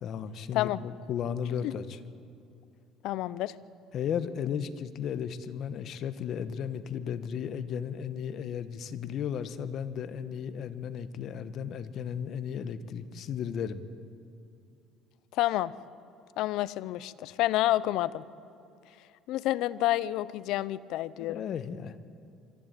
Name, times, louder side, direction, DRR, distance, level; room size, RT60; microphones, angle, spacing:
voice 1, 0.0-2.0 3.9-13.8 21.2-22.1, left 8 dB, 55° left, 13 dB, 1.1 m, -35 dB
voice 2, 3.0-3.5 15.3-15.7 16.4-18.2 19.3-21.4, left 15 dB, 75° left, 18 dB, 0.6 m, -29 dB
24.0 x 14.5 x 9.0 m, 2.6 s
cardioid pair, 110°, 0 cm